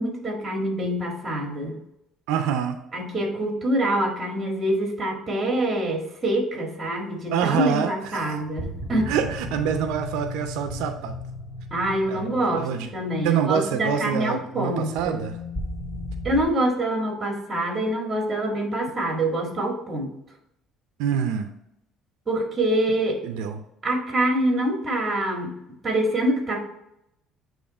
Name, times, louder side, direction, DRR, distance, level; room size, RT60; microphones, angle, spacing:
voice 1, 0.0-1.8 2.9-9.1 11.7-15.2 16.2-20.1 22.3-23.2 23.8-25.5 25.8-26.7, right 1 dB, 25° right, 1 dB, 1.9 m, -25 dB
voice 2, 2.3-2.8 7.3-8.4 9.1-11.2 12.1-12.9 13.2-15.4 21.0-21.5 23.2-23.6, right 8 dB, 85° right, 7 dB, 0.6 m, -26 dB
sound 1, 8.0-16.4, left 1 dB, 20° left, 1.7 m, -36 dB
8.7 x 3.2 x 4.3 m, 0.80 s
cardioid pair, 140°, 0 cm